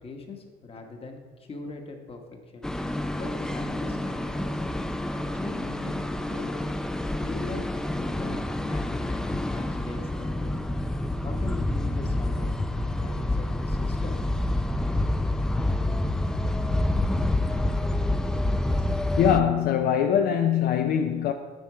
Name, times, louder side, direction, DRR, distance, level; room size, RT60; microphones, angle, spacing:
voice 1, 0.0-2.2 2.5-2.7 3.2-4.6 5.1-6.5 7.2-10.7 11.2-14.4, left 3 dB, 35° left, 4 dB, 1.2 m, -41 dB
sound 1, 2.6-19.4, left 1 dB, 5° left, 0.3 m, -28 dB
voice 2, 19.2-21.3, left 8 dB, 65° left, 6 dB, 0.5 m, -23 dB
9.2 x 4.3 x 4.8 m, 1.5 s
cardioid pair, 110°, 17 cm